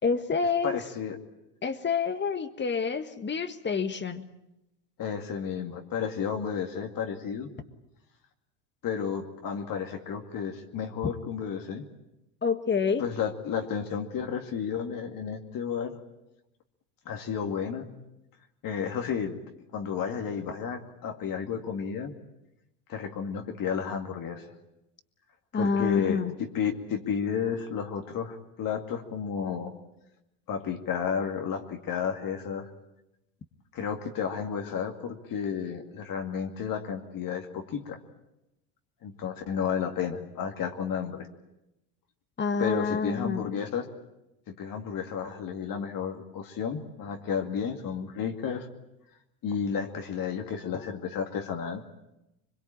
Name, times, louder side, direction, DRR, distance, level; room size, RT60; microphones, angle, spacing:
voice 1, 0.0-0.8 1.6-4.2 12.4-13.0 25.5-26.4 42.4-43.4, left 5 dB, 25° left, 10 dB, 1.7 m, -28 dB
voice 2, 0.6-1.2 5.0-7.5 8.8-11.8 13.0-15.9 17.1-17.9 18.6-19.4 19.7-22.1 22.9-24.5 25.5-29.7 30.5-32.7 33.7-38.0 39.0-41.3 42.6-43.9 44.6-48.7 49.4-51.8, left 7 dB, 45° left, 4 dB, 2.3 m, -32 dB
23.5 x 22.0 x 8.9 m, 0.91 s
supercardioid pair, 105°, 46 cm